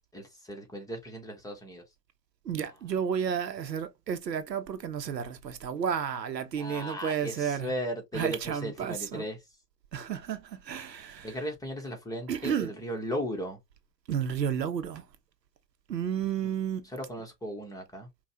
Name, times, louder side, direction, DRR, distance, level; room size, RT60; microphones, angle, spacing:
voice 1, 0.1-1.8 6.6-9.4 11.2-13.6 16.4-16.5 16.9-18.1, equal, 5° left, 1.2 m, -36 dB
voice 2, 2.4-7.7 8.1-9.2 9.9-11.4 12.3-12.8 14.1-15.0 15.9-16.8, right 8 dB, 85° right, 0.8 m, -32 dB
5.3 x 2.4 x 2.8 m
figure-of-eight pair, 95°, 49 cm